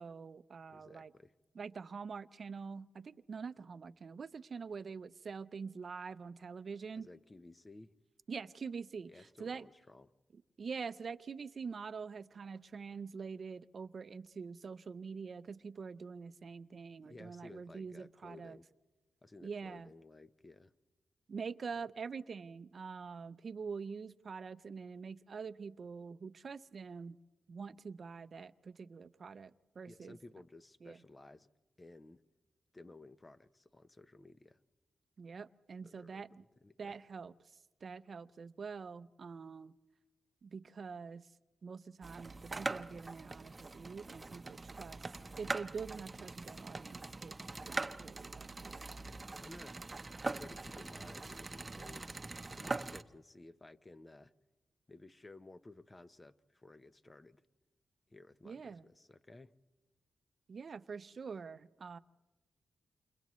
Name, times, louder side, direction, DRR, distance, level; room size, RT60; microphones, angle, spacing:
voice 1, 0.0-1.1 1.6-7.1 8.3-9.1 9.4-9.7 10.3-18.6 19.4-19.9 21.3-27.2 27.5-30.2 30.8-31.0 35.2-36.4 36.8-37.3 37.8-39.7 40.4-41.3 41.6-45.1 45.4-47.4 47.6-48.8 58.4-58.9 60.5-62.0, right 5 dB, 60° right, 0.6 m, -45 dB
voice 2, 0.7-1.4 7.0-7.9 9.1-10.1 17.0-18.7 19.2-20.7 29.9-31.5 31.8-32.2 32.7-34.6 35.8-36.2 36.6-37.0 48.7-49.8 50.2-52.2 52.5-54.3 54.9-57.4 58.1-59.6, left 2 dB, 25° left, 0.9 m, -56 dB
sound 1, 42.0-53.0, right 3 dB, 30° right, 0.9 m, -43 dB
29.0 x 28.5 x 3.1 m
cardioid pair, 60°, 0 cm